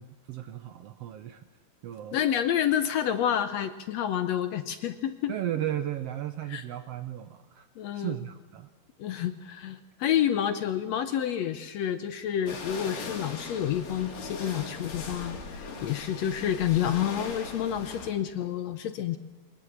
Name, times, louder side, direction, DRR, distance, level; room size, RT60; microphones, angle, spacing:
voice 1, 0.0-1.5 1.8-2.3 5.3-7.7 7.9-8.7, right 11 dB, 85° right, 10 dB, 1.3 m, -35 dB
voice 2, 2.1-5.4 6.5-6.6 7.8-8.2 9.0-19.2, left 10 dB, 70° left, 10 dB, 1.7 m, -29 dB
sound 1, 12.5-18.1, left 4 dB, 85° left, 4.5 m, -39 dB
23.0 x 19.5 x 7.3 m, 1.3 s
omnidirectional pair, 3.8 m